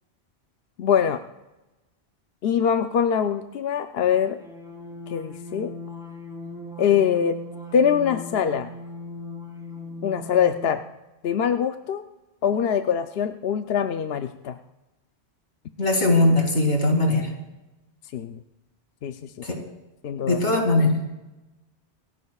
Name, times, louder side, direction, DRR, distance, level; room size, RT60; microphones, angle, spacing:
voice 1, 0.8-1.2 2.4-4.4 5.1-5.7 6.8-7.4 7.7-8.7 10.0-10.8 11.2-12.0 12.4-14.6 18.1-18.4 19.0-19.3 20.0-20.4, left 8 dB, 65° left, 7 dB, 0.8 m, -23 dB
sound 1, 4.1-10.9, left 2 dB, 5° right, 3.5 m, -39 dB
voice 2, 15.8-17.3 19.4-19.6 20.2-21.0, left 2 dB, 85° left, 2 dB, 2.8 m, -20 dB
28.0 x 15.0 x 2.4 m, 1.0 s
omnidirectional pair, 1.1 m